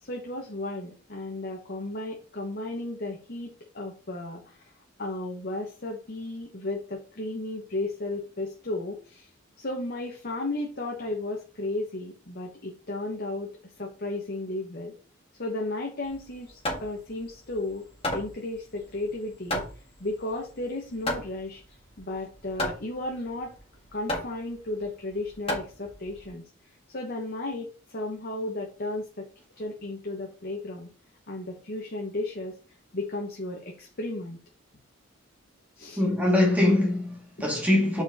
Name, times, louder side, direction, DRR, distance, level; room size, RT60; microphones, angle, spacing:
voice 1, 0.0-4.7 5.0-9.3 9.6-14.9 15.4-17.9 18.1-19.6 20.0-21.6 22.0-23.5 23.9-26.4 26.9-29.3 29.6-30.9 31.3-32.6 32.9-34.4 35.8-36.0, left 2 dB, 50° left, 1.2 m, -34 dB
Hammer, 16.0-26.3, left 1 dB, 30° left, 1.8 m, -35 dB
voice 2, 36.0-38.0, left 1 dB, 5° right, 1.9 m, -23 dB
4.7 x 4.5 x 5.5 m
head